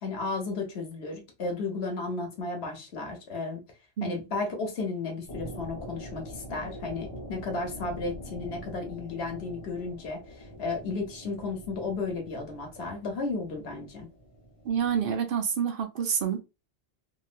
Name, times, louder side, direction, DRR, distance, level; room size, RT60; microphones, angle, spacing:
voice 1, 0.0-3.6 4.0-14.1, left 3 dB, 80° left, 1.2 m, -34 dB
sound 1, 5.2-15.2, equal, 35° left, 0.8 m, -44 dB
voice 2, 14.6-16.4, right 7 dB, 65° right, 0.8 m, -28 dB
2.9 x 2.6 x 2.4 m
omnidirectional pair, 1.1 m